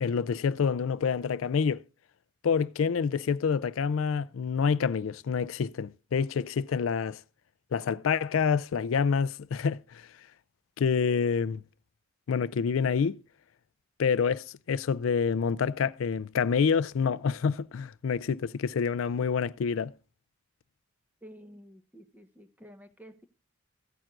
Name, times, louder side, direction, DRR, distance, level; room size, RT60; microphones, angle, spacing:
voice 1, 0.0-1.8 2.4-7.2 7.7-10.1 10.8-11.6 12.3-13.2 14.0-19.9, left 6 dB, 80° left, 0.4 m, -27 dB
voice 2, 21.2-23.2, equal, 10° right, 1.1 m, -51 dB
16.0 x 9.0 x 2.5 m
head